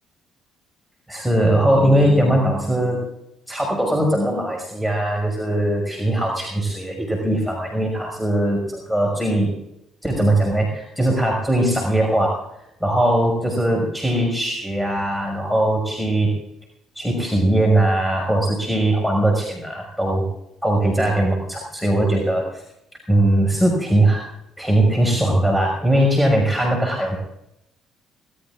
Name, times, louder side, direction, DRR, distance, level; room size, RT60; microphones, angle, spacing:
voice 1, 1.1-3.0 3.5-9.5 10.0-12.4 12.8-16.3 17.0-20.3 20.6-22.6 23.1-24.2 24.6-27.2, right 1 dB, 5° left, 0 dB, 6.1 m, -20 dB
22.0 x 20.0 x 2.5 m, 0.81 s
figure-of-eight pair, 50°, 0 cm